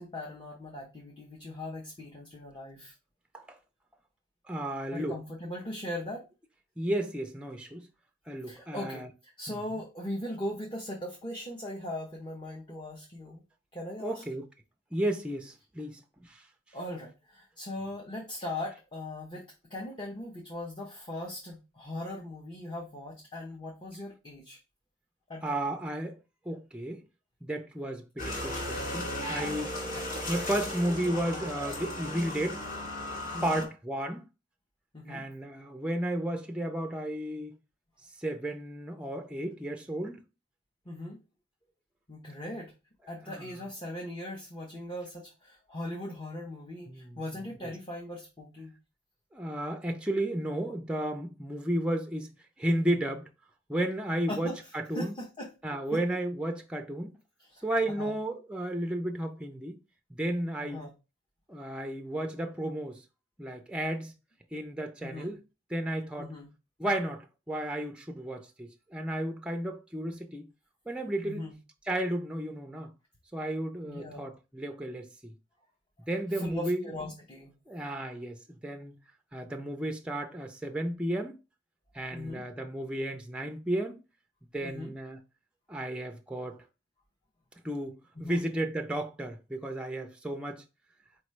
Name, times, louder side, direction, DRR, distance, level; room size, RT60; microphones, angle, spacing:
voice 1, 0.0-2.9 4.9-6.2 8.5-13.4 13.7-14.2 16.7-24.6 25.3-25.6 29.9-30.3 33.3-33.6 34.9-35.2 40.8-41.2 42.1-42.7 43.1-48.7 54.3-54.6 54.9-56.0 57.4-58.1 60.6-60.9 65.0-65.3 66.2-66.5 71.2-71.5 73.8-74.2 76.3-77.5 82.1-82.4 84.6-84.9 88.2-88.4, left 1 dB, 25° left, 0.8 m, -39 dB
voice 2, 4.5-5.2 6.8-7.9 8.3-9.1 9.5-9.6 14.0-14.5 14.9-16.4 25.4-26.2 26.5-27.0 27.4-29.8 30.3-32.6 33.4-34.3 35.1-37.6 38.2-40.2 43.3-43.5 46.9-47.2 47.6-47.7 49.3-53.3 53.7-55.2 55.6-57.2 57.6-59.8 60.1-60.9 61.5-63.0 63.4-64.1 64.5-65.4 65.7-66.3 66.8-70.5 70.9-71.5 71.9-72.9 73.3-75.3 76.1-76.9 77.7-79.0 79.3-81.4 81.9-84.0 84.5-85.2 85.7-86.6 87.6-90.6, right 1 dB, 5° right, 0.4 m, -33 dB
sound 1, 28.2-33.7, left 1 dB, 45° left, 2.0 m, -36 dB
4.5 x 3.0 x 3.1 m
head